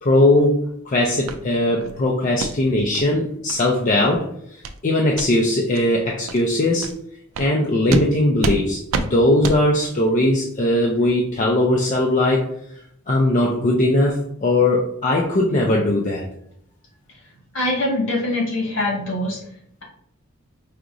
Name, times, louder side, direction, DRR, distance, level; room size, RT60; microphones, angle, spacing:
voice 1, 0.0-4.3 4.8-6.9 7.4-12.5 13.1-16.2, left 1 dB, 40° left, -1 dB, 0.5 m, -19 dB
sound 1, 1.3-1.4 1.8-2.0 2.4-2.5 2.9-3.0 3.5-3.6 4.0-4.2 4.6-4.8 5.1-5.3 5.7-5.8 6.3-6.4 6.8-6.9 7.3-7.5 7.9-8.1 8.4-8.6 8.9-9.1 9.4-9.6, right 3 dB, 75° right, 0.4 m, -26 dB
voice 2, 17.5-19.4, left 1 dB, 65° left, -2 dB, 1.5 m, -23 dB
4.8 x 2.9 x 2.5 m, 0.69 s
head